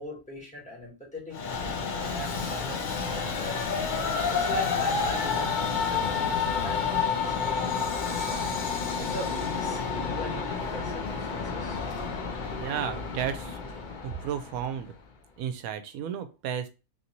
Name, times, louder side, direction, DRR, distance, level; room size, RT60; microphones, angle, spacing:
voice 1, 0.0-1.4 1.9-3.8 4.3-8.4 9.0-11.8, left 1 dB, 5° left, -4 dB, 1.1 m, -41 dB
Train, 1.3-14.8, left 5 dB, 80° left, 0.4 m, -30 dB
voice 2, 12.5-13.6 14.0-14.9 15.4-16.7, right 9 dB, 75° right, 9 dB, 1.0 m, -33 dB
3.2 x 2.6 x 2.8 m, 0.30 s
omnidirectional pair, 1.5 m